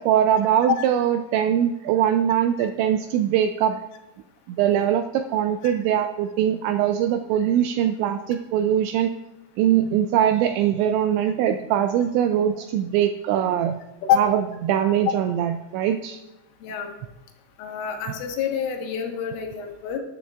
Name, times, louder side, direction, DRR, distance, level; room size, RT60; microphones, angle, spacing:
voice 1, 0.0-3.8 4.5-9.1 9.6-13.8 14.2-16.2, right 10 dB, 85° right, 7 dB, 2.6 m, -22 dB
voice 2, 17.6-20.0, left 8 dB, 80° left, 2 dB, 3.9 m, -26 dB
19.5 x 11.0 x 2.4 m, 1.0 s
omnidirectional pair, 5.7 m